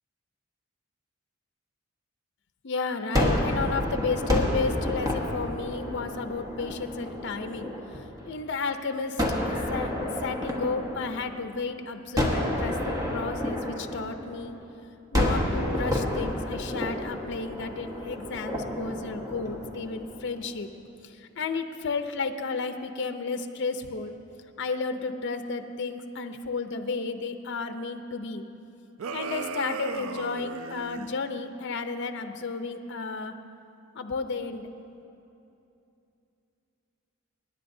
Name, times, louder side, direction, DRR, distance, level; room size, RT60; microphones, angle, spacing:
voice 1, 2.6-9.9 10.2-14.6 15.1-20.7 21.0-24.1 24.6-28.4 29.1-33.3 33.9-34.7, left 4 dB, 60° left, 7 dB, 0.6 m, -32 dB
Gunshot gunfire, 3.1-8.3 9.2-11.6 12.2-14.6 15.1-20.3, left 1 dB, 20° right, 1.3 m, -30 dB
sound 1, 29.0-31.1, right 6 dB, 85° right, 0.4 m, -36 dB
25.5 x 10.0 x 2.7 m, 2.8 s
head